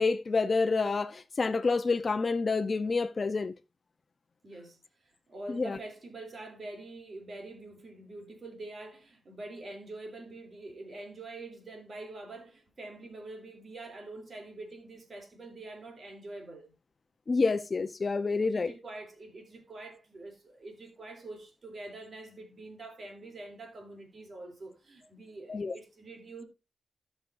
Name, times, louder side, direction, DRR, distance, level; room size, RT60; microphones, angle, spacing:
voice 1, 0.0-3.5 5.5-5.8 17.3-18.7 25.5-25.8, left 4 dB, 40° left, 0.6 m, -28 dB
voice 2, 4.4-16.7 18.5-26.4, right 2 dB, 50° right, 3.0 m, -45 dB
16.5 x 6.2 x 2.6 m
wide cardioid pair, 105°, 0 cm